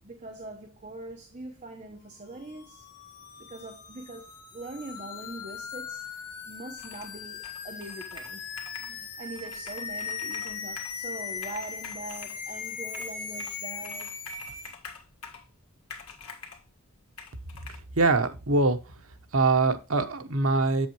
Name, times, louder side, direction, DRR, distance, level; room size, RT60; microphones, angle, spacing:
voice 1, 0.0-2.8 3.5-6.0 6.5-8.5 8.8-14.2, right 2 dB, 35° right, 1.1 m, -42 dB
sound 1, 2.4-14.7, left 6 dB, 90° left, 2.2 m, -39 dB
Computer keyboard, 6.8-7.2 7.4-8.9 9.3-11.0 11.3-12.4 12.9-13.6 13.8-15.5 15.9-16.6 17.2-17.8, left 5 dB, 75° left, 1.7 m, -46 dB
voice 2, 17.7-18.8 19.3-20.9, right 3 dB, 70° right, 1.0 m, -23 dB
8.3 x 7.5 x 3.0 m
head